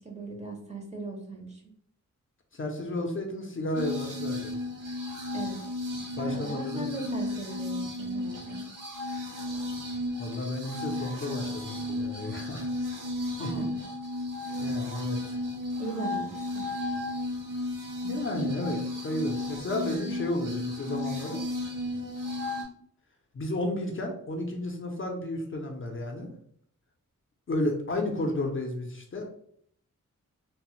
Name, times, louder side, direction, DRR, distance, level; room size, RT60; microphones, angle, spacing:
voice 1, 0.0-1.6 5.3-5.6 6.1-8.7 13.4-13.8 15.8-16.7, right 3 dB, 20° right, 0 dB, 0.5 m, -38 dB
voice 2, 2.5-4.5 6.2-6.9 10.2-12.7 13.2-13.6 14.6-15.4 18.0-21.4 23.3-26.4 27.5-29.3, left 1 dB, 40° left, 2 dB, 0.5 m, -32 dB
sound 1, 3.8-22.6, left 1 dB, 80° right, 0.7 m, -34 dB
3.1 x 2.0 x 2.9 m, 0.64 s
wide cardioid pair, 145°, 32 cm